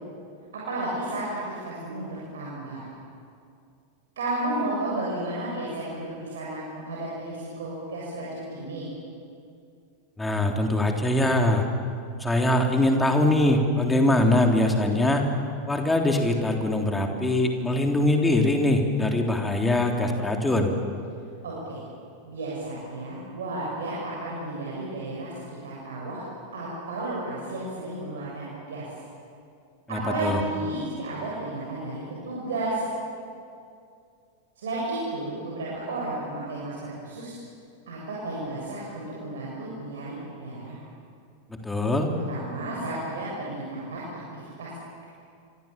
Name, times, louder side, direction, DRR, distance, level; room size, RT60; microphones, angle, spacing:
voice 1, 0.5-2.8 4.2-8.9 21.4-21.8 22.2-25.3 25.6-26.2 26.5-28.9 29.9-32.9 34.6-37.4 37.9-40.8 42.1-44.0 44.3-44.7, right 2 dB, 65° right, -5 dB, 7.4 m, -33 dB
voice 2, 10.2-11.7 12.2-15.3 15.7-20.7 29.9-30.4 41.6-42.1, left 1 dB, 10° left, 2 dB, 3.4 m, -22 dB
27.5 x 25.5 x 7.5 m, 2.4 s
figure-of-eight pair, 90°, 0 cm